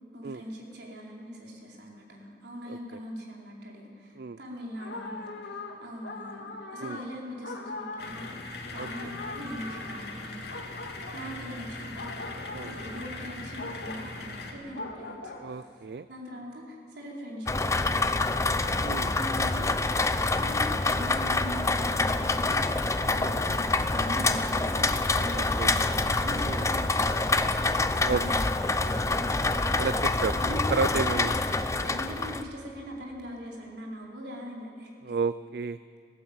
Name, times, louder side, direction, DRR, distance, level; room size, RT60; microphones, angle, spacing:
voice 1, 0.1-10.7 11.1-12.3 12.5-27.4 27.9-28.5 28.8-29.9 30.3-30.6 31.1-31.5 31.8-35.2, equal, 80° right, -2 dB, 4.5 m, -41 dB
sound 1, 4.8-15.7, left 2 dB, 90° left, 2.1 m, -41 dB
sound 2, 8.0-14.5, left 2 dB, 65° left, 2.7 m, -40 dB
voice 2, 15.4-16.1 18.8-19.2 23.1-23.4 25.3-25.7 26.4-26.7 28.1-28.2 29.8-30.3 30.7-31.3 35.0-35.8, right 4 dB, 60° right, 14 dB, 0.4 m, -31 dB
Rain, 17.5-32.4, left 3 dB, 15° left, 0.7 m, -26 dB
18.5 x 16.5 x 8.7 m, 2.4 s
head